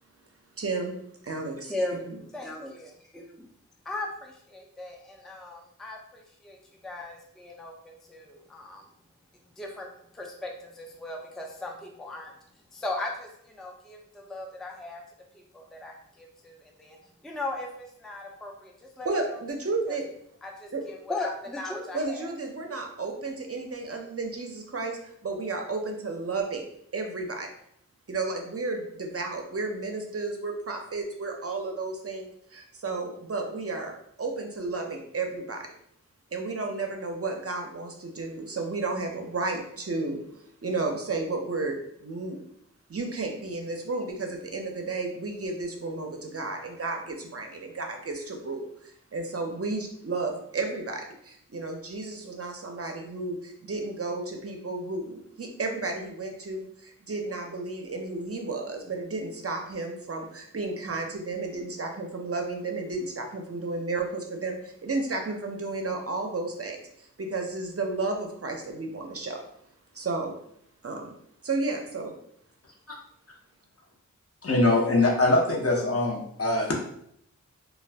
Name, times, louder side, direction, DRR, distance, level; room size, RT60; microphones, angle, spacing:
voice 1, 0.6-1.0 1.2-2.0 19.0-20.1 20.7-20.8 21.9-26.6 26.9-27.5 28.1-33.9 34.2-35.7 36.3-40.2 40.6-42.4 42.9-69.4 69.9-70.3 70.8-71.1 71.4-72.1, right 3 dB, 50° right, 3 dB, 0.5 m, -32 dB
voice 2, 1.6-2.1 2.3-3.5 3.8-8.9 9.6-9.9 10.1-12.3 12.7-15.0 15.3-17.0 17.2-19.4 19.9-20.0 20.4-22.3, left 2 dB, ahead, 1 dB, 0.4 m, -38 dB
voice 3, 74.4-76.8, left 2 dB, 50° left, -1 dB, 0.7 m, -23 dB
2.5 x 2.2 x 3.3 m, 0.70 s
wide cardioid pair, 60°, 31 cm